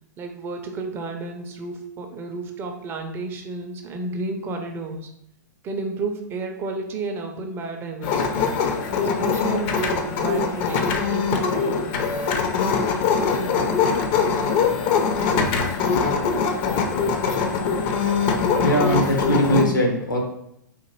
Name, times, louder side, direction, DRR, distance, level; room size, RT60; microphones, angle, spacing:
voice 1, 0.2-5.1 5.6-8.5 9.0-12.0 13.1-13.8, right 3 dB, 20° right, 4 dB, 0.4 m, -31 dB
sound 1, 8.0-19.6, left 5 dB, 40° left, 0.5 m, -22 dB
voice 2, 18.6-20.2, equal, 85° left, 0 dB, 0.9 m, -21 dB
3.7 x 2.5 x 2.9 m, 0.79 s
figure-of-eight pair, 110°, 11 cm